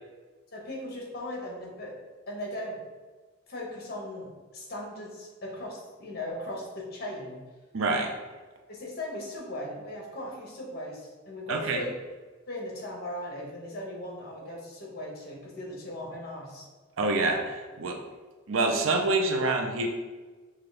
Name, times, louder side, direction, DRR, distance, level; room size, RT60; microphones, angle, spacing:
voice 1, 0.5-2.0 2.3-2.8 3.5-7.4 8.7-11.9 12.5-16.7, left 1 dB, 55° left, -2 dB, 1.1 m, -38 dB
voice 2, 7.7-8.1 11.5-11.8 17.0-18.0 18.5-19.9, right 2 dB, 90° right, 3 dB, 0.6 m, -26 dB
5.8 x 2.4 x 3.3 m, 1.3 s
head